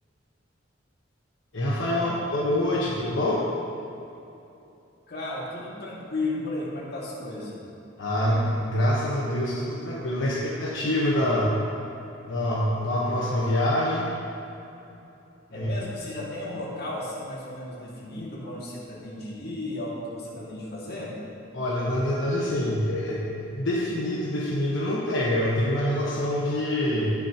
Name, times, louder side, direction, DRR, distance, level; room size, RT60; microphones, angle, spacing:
voice 1, 1.5-3.4 8.0-11.6 12.3-14.1 15.5-15.7 21.5-27.1, left 1 dB, 80° left, -6 dB, 1.2 m, -25 dB
voice 2, 5.1-7.6 14.9-15.0 15.5-21.2, left 2 dB, 55° left, -5 dB, 2.1 m, -34 dB
17.0 x 6.3 x 3.0 m, 2.9 s
head